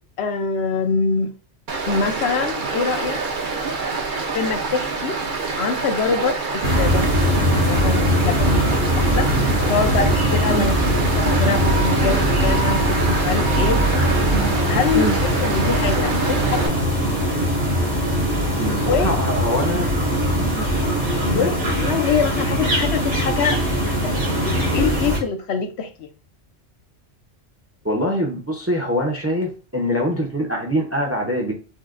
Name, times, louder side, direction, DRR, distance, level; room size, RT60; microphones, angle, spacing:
voice 1, 0.2-1.3 1.9-3.2 4.3-5.2 5.5-9.4 9.7-13.8 14.7-17.1 18.7-19.2 20.9-23.6 24.0-24.1 24.4-26.1, left 5 dB, 70° left, 0.9 m, -25 dB
Stream, 1.7-16.7, right 4 dB, 50° right, 0.8 m, -27 dB
sound 1, 6.6-25.2, equal, 75° right, 2.5 m, -20 dB
voice 2, 18.6-19.9 20.3-20.7 21.3-21.5 27.8-31.5, equal, 15° right, 0.6 m, -24 dB
6.2 x 2.2 x 2.5 m
omnidirectional pair, 1.2 m